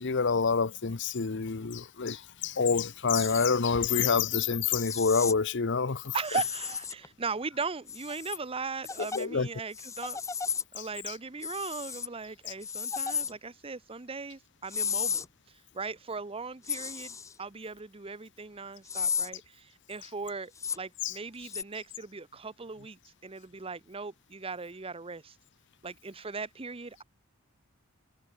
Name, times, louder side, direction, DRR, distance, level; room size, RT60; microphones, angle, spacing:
voice 1, 0.0-6.1 9.0-9.5 10.8-11.1 21.0-21.1, left 5 dB, 55° left, 0.8 m, -27 dB
sound 1, 3.1-3.5 4.8-5.3 6.2-7.1 7.9-8.4 8.8-9.2 9.7-10.6 11.4-12.1 12.6-13.3 14.7-15.2 16.6-17.3 18.9-19.3 20.6-20.8 21.5-21.6, left 7 dB, 15° left, 0.4 m, -33 dB
voice 2, 6.1-10.2 10.7-15.3 15.7-25.3 25.8-27.0, right 4 dB, 25° right, 0.8 m, -38 dB
head